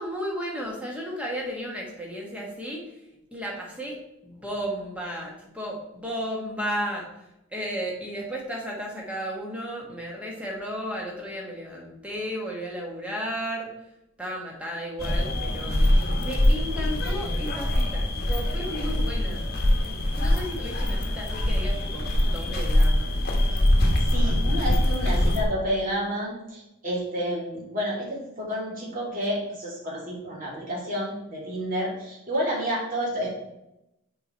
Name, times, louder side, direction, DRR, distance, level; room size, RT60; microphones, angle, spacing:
voice 1, 0.0-3.0 3.3-7.1 7.5-13.7 14.2-15.8 16.2-19.5 20.2-23.1, equal, 5° right, -2 dB, 1.4 m, -34 dB
sound 1, 15.0-25.4, left 1 dB, 45° left, 1.2 m, -23 dB
voice 2, 24.0-33.3, equal, 35° right, -4 dB, 2.6 m, -30 dB
6.7 x 4.8 x 4.3 m, 0.88 s
head